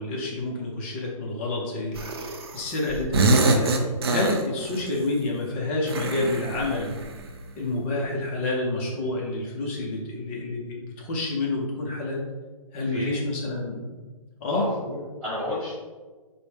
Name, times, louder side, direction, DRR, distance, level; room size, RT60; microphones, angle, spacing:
voice 1, 0.0-3.7 4.1-6.9 7.6-12.2 12.7-14.0 14.4-14.7, left 2 dB, 20° left, -2 dB, 0.5 m, -28 dB
sound 1, 1.9-2.6 2.9-4.9 5.9-7.4, right 2 dB, 45° right, 0.4 m, -25 dB
voice 2, 14.5-15.7, left 1 dB, 5° right, -12 dB, 1.1 m, -31 dB
4.2 x 2.1 x 3.3 m, 1.3 s
hypercardioid pair, 150°, 18 cm